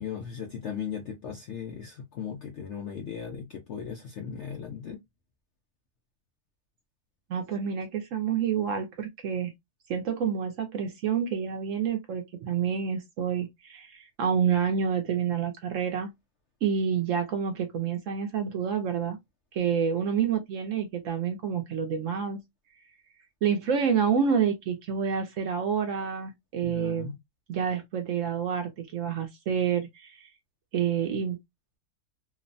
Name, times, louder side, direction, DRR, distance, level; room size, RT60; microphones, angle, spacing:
voice 1, 0.0-5.0 26.6-27.1, left 7 dB, 70° left, 0.7 m, -37 dB
voice 2, 7.3-9.5 9.9-16.1 16.6-19.2 19.5-22.4 23.4-27.1 27.5-30.3 30.7-31.4, right 7 dB, 70° right, 0.8 m, -28 dB
3.0 x 2.0 x 2.5 m
omnidirectional pair, 1.7 m